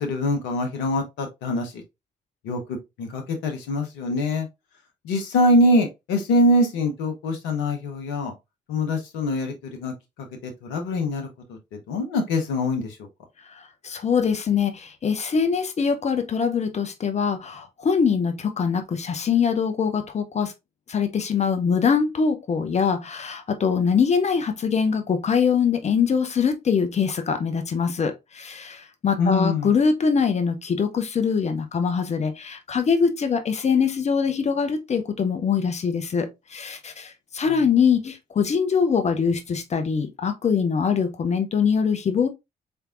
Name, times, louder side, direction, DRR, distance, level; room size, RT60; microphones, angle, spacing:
voice 1, 0.0-1.8 2.4-2.6 3.0-4.5 5.0-8.3 8.7-9.5 9.8-9.9 10.4-11.6 11.9-13.0 29.2-29.7, left 1 dB, 60° left, 0.9 m, -23 dB
voice 2, 13.5-20.5 20.9-42.3, left 6 dB, 30° left, 0.7 m, -23 dB
4.2 x 3.3 x 2.4 m
figure-of-eight pair, 45°, 21 cm